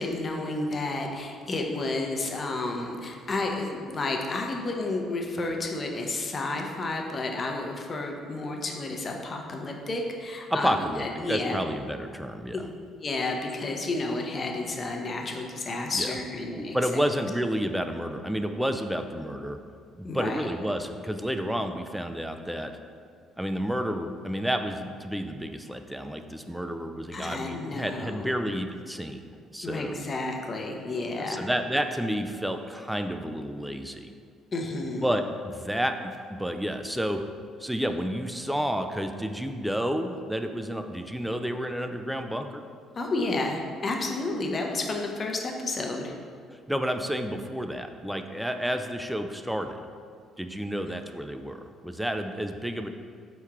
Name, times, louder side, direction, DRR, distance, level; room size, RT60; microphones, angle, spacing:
voice 1, 0.0-10.7 11.0-11.6 12.5-16.8 20.0-20.5 27.1-28.3 29.6-31.5 34.5-35.1 43.0-46.1, left 2 dB, 40° left, 2 dB, 0.6 m, -31 dB
voice 2, 10.5-12.7 16.0-16.1 16.7-19.6 20.0-22.7 23.4-29.2 29.5-30.0 31.2-34.1 35.0-35.2 35.5-37.2 37.6-42.6 46.7-49.8 50.4-52.9, equal, 5° right, 6 dB, 0.3 m, -30 dB
4.4 x 3.0 x 3.5 m, 2.1 s
hypercardioid pair, 55°, 0 cm